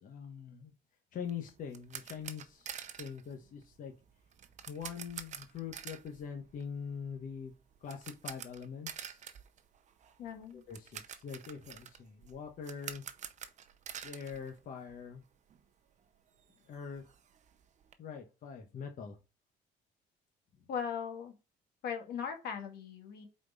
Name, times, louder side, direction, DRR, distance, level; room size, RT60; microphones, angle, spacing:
voice 1, 0.0-0.7 1.1-3.9 4.7-7.5 7.8-9.2 10.5-13.0 14.0-15.2 16.7-17.0 18.0-19.2, left 7 dB, 50° left, 2 dB, 1.2 m, -43 dB
sound 1, 1.3-15.2 15.5-15.6 16.1-16.2 16.4-17.9, right 8 dB, 45° right, 0.7 m, -48 dB
voice 2, 10.2-10.6 20.7-21.3 21.8-23.3, left 7 dB, 70° left, 4 dB, 1.5 m, -39 dB
4.7 x 4.3 x 5.3 m, 0.29 s
cardioid pair, 110°, 17 cm